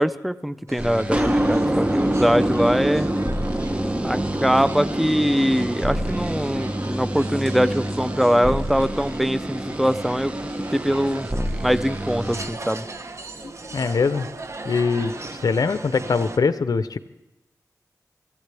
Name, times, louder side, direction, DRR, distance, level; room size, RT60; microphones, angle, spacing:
voice 1, 0.0-3.1 4.0-10.3 10.7-11.3 11.6-12.9, equal, ahead, 14 dB, 0.5 m, -22 dB
sound 1, 0.7-16.4, right 2 dB, 45° right, 1.1 m, -38 dB
sound 2, 0.8-12.5, right 1 dB, 15° right, 0.9 m, -26 dB
voice 2, 13.7-14.3 14.6-15.1 15.4-17.0, left 5 dB, 65° left, 12 dB, 0.6 m, -22 dB
25.0 x 15.5 x 3.4 m, 0.99 s
wide cardioid pair, 60°, 7 cm